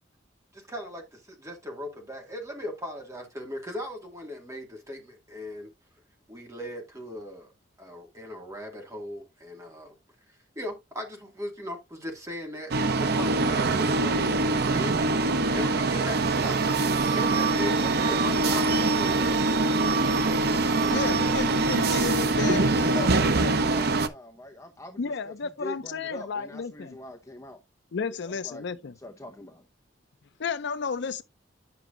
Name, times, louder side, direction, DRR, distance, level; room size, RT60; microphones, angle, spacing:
voice 1, 0.7-5.7 6.3-7.5 7.8-10.0 10.6-15.0 15.5-20.4, equal, 15° right, 2.1 m, -38 dB
sound 1, 12.7-24.1, right 3 dB, 60° right, 0.7 m, -24 dB
voice 2, 20.9-23.1 25.0-27.0 27.9-28.9 30.4-31.2, left 5 dB, 65° left, 0.5 m, -32 dB
voice 3, 22.5-27.6 28.3-28.6 29.0-29.7, left 1 dB, 15° left, 0.8 m, -41 dB
9.7 x 5.9 x 2.5 m
head